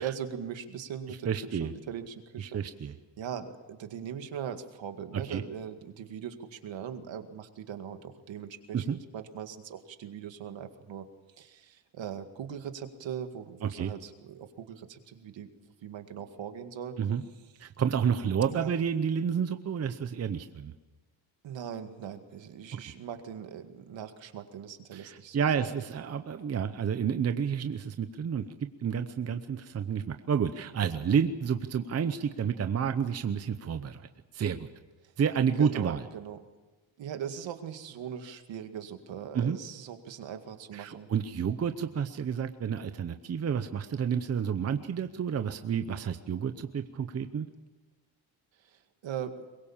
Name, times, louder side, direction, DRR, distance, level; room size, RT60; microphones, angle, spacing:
voice 1, 0.0-2.6 3.2-11.0 11.4-15.5 15.8-17.0 18.5-18.7 21.4-25.7 35.6-36.4 37.0-41.1 48.6-49.5, right 8 dB, 65° right, 7 dB, 2.1 m, -40 dB
voice 2, 1.2-1.7 2.4-2.9 5.3-5.4 8.7-9.0 13.6-13.9 17.0-17.2 17.6-20.7 22.7-22.8 24.9-28.4 28.8-34.0 34.3-34.7 35.2-36.0 39.3-39.6 40.7-47.5, right 7 dB, 30° right, 9 dB, 0.8 m, -30 dB
23.0 x 21.5 x 7.3 m, 1.2 s
cardioid pair, 175°, 49 cm